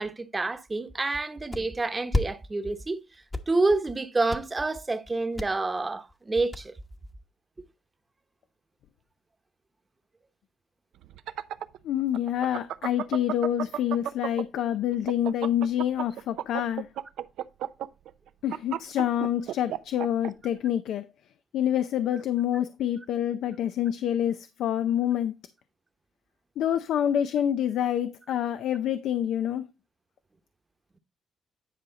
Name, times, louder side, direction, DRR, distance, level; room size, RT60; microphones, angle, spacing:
voice 1, 0.0-3.0 3.5-6.7, right 3 dB, 25° right, 1.0 m, -28 dB
sound 1, 1.5-1.6 2.1-2.3 2.6-2.9 3.1-4.0 4.3-4.6 5.1-5.5 5.8-5.9 6.1-6.2 6.5-7.1, left 2 dB, 20° left, 1.0 m, -29 dB
Evil laugh, 11.0-14.6 14.9-20.3, right 11 dB, 85° right, 0.5 m, -32 dB
voice 2, 11.8-16.9 18.4-21.1 21.5-25.4 26.6-29.6, left 10 dB, 80° left, 0.5 m, -27 dB
10.0 x 4.9 x 3.9 m
cardioid pair, 90°, 0 cm